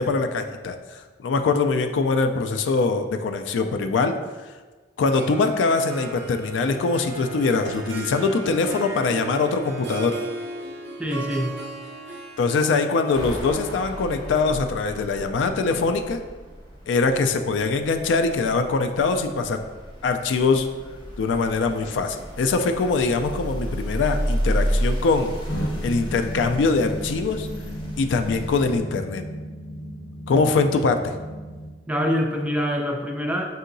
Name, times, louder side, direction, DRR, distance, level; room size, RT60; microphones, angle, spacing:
voice 1, 0.0-4.1 5.0-10.2 12.4-16.2 16.9-19.6 20.0-20.7 21.2-25.3 25.8-27.5 28.0-29.2 30.3-31.0, left 4 dB, 85° left, 7 dB, 0.3 m, -23 dB
Harp, 5.1-16.6, right 2 dB, 70° right, 0.5 m, -37 dB
voice 2, 11.0-11.6 31.9-33.4, equal, 5° right, 2 dB, 0.3 m, -25 dB
sound 1, 13.1-28.8, equal, 25° left, 0.7 m, -32 dB
sound 2, 25.5-31.7, equal, 60° left, 0.7 m, -34 dB
5.4 x 2.8 x 2.6 m, 1.4 s
head